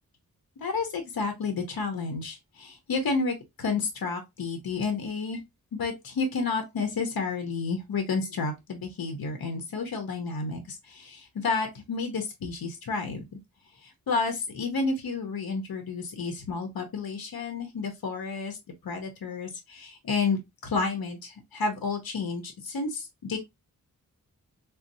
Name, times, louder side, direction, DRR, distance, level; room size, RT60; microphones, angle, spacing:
voice 1, 0.6-5.4 5.7-13.2 13.8-18.6 18.8-23.4, left 4 dB, 75° left, 0.8 m, -31 dB
4.0 x 2.0 x 2.6 m
cardioid pair, 45°, 36 cm